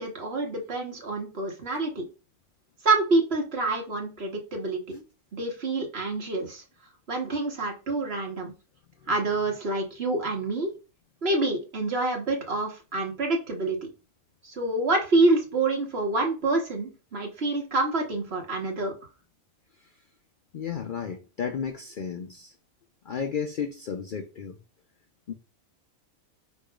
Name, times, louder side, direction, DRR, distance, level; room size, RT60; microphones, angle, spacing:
voice 1, 0.0-2.1 2.8-5.0 5.3-6.6 7.1-8.5 9.1-10.7 11.2-13.9 14.4-18.9, right 2 dB, 50° right, 1.4 m, -27 dB
voice 2, 20.5-22.5 23.0-24.6 25.3-25.4, left 7 dB, 60° left, 0.5 m, -33 dB
5.1 x 4.4 x 2.3 m
omnidirectional pair, 1.4 m